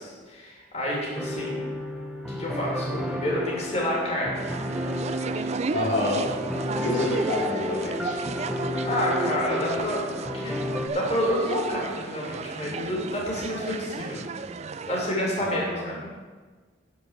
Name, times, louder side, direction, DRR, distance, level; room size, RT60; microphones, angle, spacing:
voice 1, 0.0-1.5 2.3-4.4 8.8-10.0 10.3-10.7 10.9-14.3 14.9-16.1, equal, 35° left, -3 dB, 2.9 m, -29 dB
sound 1, 1.2-10.9, left 1 dB, ahead, 0.8 m, -32 dB
sound 2, 4.3-15.1, right 4 dB, 35° right, 0.4 m, -34 dB
voice 2, 5.7-6.3 6.8-8.1 15.4-15.9, left 2 dB, 65° left, -5 dB, 2.4 m, -28 dB
11.0 x 5.2 x 7.4 m, 1.4 s
head